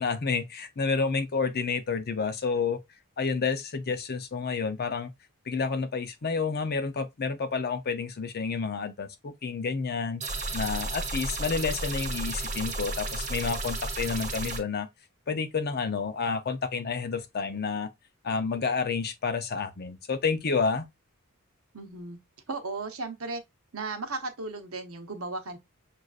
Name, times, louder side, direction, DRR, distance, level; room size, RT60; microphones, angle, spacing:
voice 1, 0.0-2.8 3.2-5.1 5.5-10.2 10.5-14.9 15.3-17.9 18.2-20.9, left 5 dB, 45° left, 0.6 m, -29 dB
sound 1, 10.2-14.6, right 2 dB, 35° right, 0.9 m, -33 dB
voice 2, 21.7-22.2 22.5-23.4 23.7-25.6, right 3 dB, 70° right, 0.9 m, -35 dB
6.3 x 2.5 x 2.4 m
head